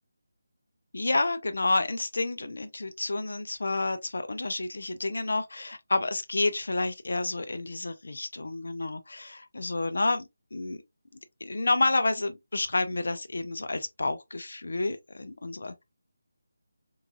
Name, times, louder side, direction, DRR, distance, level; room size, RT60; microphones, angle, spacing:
voice 1, 0.9-10.2 10.5-10.8 11.4-15.8, left 2 dB, 70° left, 0.7 m, -29 dB
3.5 x 3.2 x 2.4 m
figure-of-eight pair, 165°, 0 cm